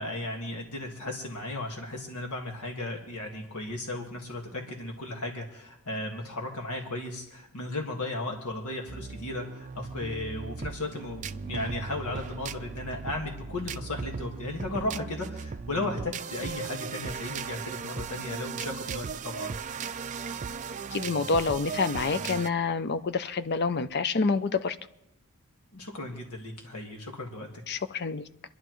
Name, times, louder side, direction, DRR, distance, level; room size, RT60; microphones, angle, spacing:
voice 1, 0.0-19.6 25.7-27.5, left 2 dB, 80° left, 1.8 m, -35 dB
sound 1, 8.9-22.5, right 5 dB, 35° right, 0.4 m, -37 dB
voice 2, 20.9-24.8 27.7-28.3, left 4 dB, 45° left, 0.5 m, -27 dB
27.5 x 11.0 x 3.1 m
head